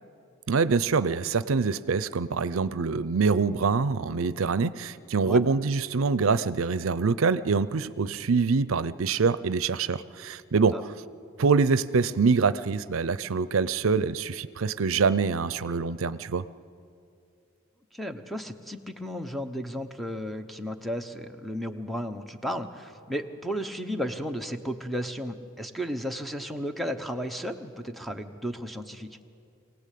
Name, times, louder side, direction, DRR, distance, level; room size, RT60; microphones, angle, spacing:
voice 1, 0.5-10.8 11.4-16.4, right 4 dB, 80° right, 15 dB, 0.6 m, -25 dB
voice 2, 17.9-29.1, equal, ahead, 7 dB, 1.0 m, -34 dB
25.0 x 18.0 x 8.5 m, 2.5 s
head